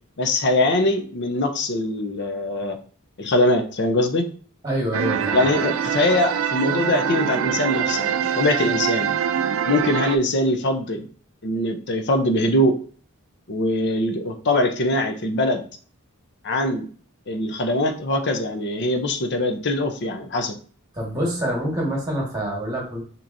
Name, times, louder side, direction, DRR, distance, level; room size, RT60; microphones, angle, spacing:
voice 1, 0.2-2.8 3.2-4.3 5.3-9.1 9.7-11.0 11.4-12.7 13.5-15.6 16.4-16.9 17.3-20.6, left 1 dB, 55° left, 6 dB, 0.7 m, -22 dB
voice 2, 4.6-5.5 20.9-23.0, equal, 15° right, -3 dB, 1.6 m, -26 dB
sound 1, 4.9-10.2, right 8 dB, 70° right, 0.4 m, -24 dB
5.9 x 3.0 x 2.7 m, 0.43 s
head